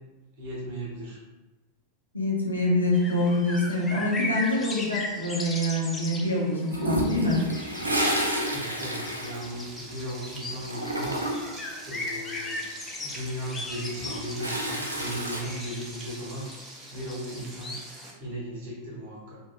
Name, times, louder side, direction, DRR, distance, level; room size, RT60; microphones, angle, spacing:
voice 1, 0.4-1.2 8.4-11.5 11.8-12.6 13.0-17.8 18.2-19.4, equal, 50° right, -5 dB, 0.9 m, -37 dB
voice 2, 2.1-7.4, left 1 dB, 85° left, -4 dB, 0.7 m, -25 dB
sound 1, 2.9-18.1, left 2 dB, 15° left, 0.3 m, -38 dB
Toilet flush, 6.7-10.2 10.4-11.6 13.7-15.4, right 1 dB, 80° right, 0.4 m, -30 dB
Frying (food), 9.0-18.1, right 2 dB, 20° right, 0.6 m, -45 dB
3.1 x 2.1 x 2.4 m, 1.1 s
figure-of-eight pair, 90°, 0 cm